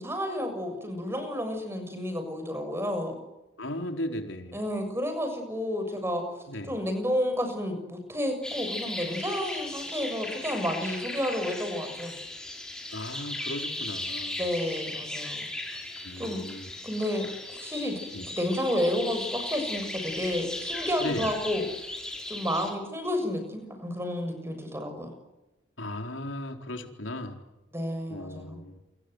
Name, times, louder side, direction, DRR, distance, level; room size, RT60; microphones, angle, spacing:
voice 1, 0.0-3.2 4.5-6.2 6.6-12.2 14.4-15.5 16.2-16.4 16.8-18.0 18.3-21.6 22.3-25.1 27.7-28.6, equal, 15° right, 7 dB, 7.0 m, -31 dB
voice 2, 3.6-4.6 6.5-6.8 12.9-14.4 16.0-16.7 18.1-18.2 21.0-21.3 25.8-27.4 28.1-28.8, left 1 dB, 90° left, 5 dB, 4.1 m, -36 dB
sound 1, 8.4-22.7, left 1 dB, 5° left, 6.0 m, -37 dB
29.0 x 25.0 x 8.0 m, 1.0 s
head